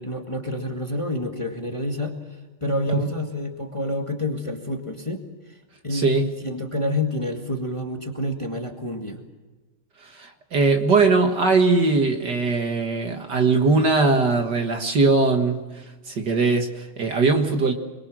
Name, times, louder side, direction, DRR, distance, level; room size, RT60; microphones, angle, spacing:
voice 1, 0.0-2.2 2.6-5.2 5.8-9.2, left 1 dB, 15° left, 3 dB, 1.9 m, -28 dB
voice 2, 5.9-6.3 10.0-17.7, right 3 dB, 55° right, 4 dB, 2.2 m, -20 dB
27.0 x 22.0 x 6.3 m, 1.2 s
omnidirectional pair, 2.4 m